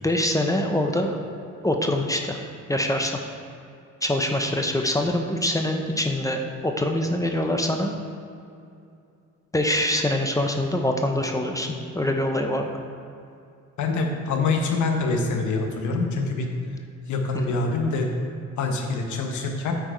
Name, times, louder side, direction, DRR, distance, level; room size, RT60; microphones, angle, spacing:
voice 1, 0.0-1.2 1.6-2.4 2.7-3.2 4.0-7.9 9.5-12.7 17.5-17.6, left 1 dB, 10° left, 3 dB, 0.7 m, -24 dB
voice 2, 13.8-16.5 17.1-18.1 18.6-19.7, left 3 dB, 75° left, 3 dB, 1.2 m, -25 dB
8.9 x 4.7 x 4.5 m, 2.5 s
cardioid pair, 90°, 30 cm